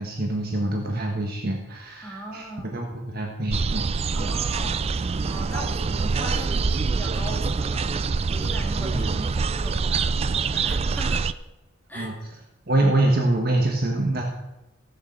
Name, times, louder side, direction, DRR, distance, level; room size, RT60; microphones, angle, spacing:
voice 1, 0.0-3.8 8.8-9.1 11.9-12.1 12.7-14.2, right 2 dB, 45° right, 1 dB, 1.4 m, -25 dB
voice 2, 2.0-2.8 4.1-11.3 11.9-12.1, right 1 dB, 10° left, -1 dB, 2.3 m, -38 dB
sound 1, 3.5-11.3, right 4 dB, 30° right, 0.3 m, -25 dB
15.5 x 6.8 x 6.8 m, 0.96 s
head